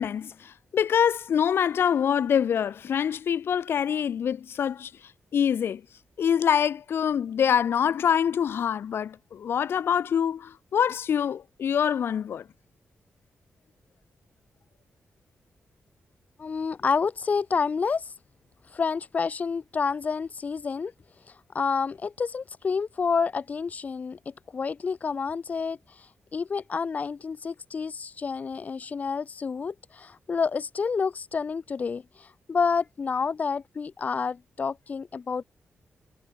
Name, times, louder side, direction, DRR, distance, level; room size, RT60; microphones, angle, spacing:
voice 1, 0.0-4.9 5.3-5.8 6.2-12.4, left 8 dB, 70° left, 7.9 m, -25 dB
voice 2, 16.4-18.1 18.7-20.9 21.5-26.1 26.3-35.4, left 5 dB, 40° left, 6.1 m, -29 dB
wide cardioid pair, 155°, 4 cm